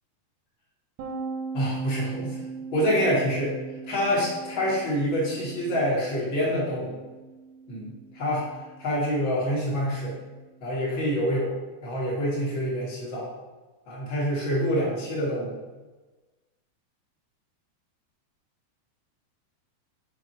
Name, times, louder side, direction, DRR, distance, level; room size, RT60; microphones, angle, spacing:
sound 1, 1.0-10.4, right 4 dB, 75° right, 2.5 m, -40 dB
voice 1, 1.5-2.4 2.7-3.5 3.9-7.0 7.7-8.4 8.8-10.2 10.6-11.6 11.8-13.3 13.9-15.6, equal, 75° left, -7 dB, 1.1 m, -26 dB
6.2 x 4.7 x 4.6 m, 1.2 s
omnidirectional pair, 5.0 m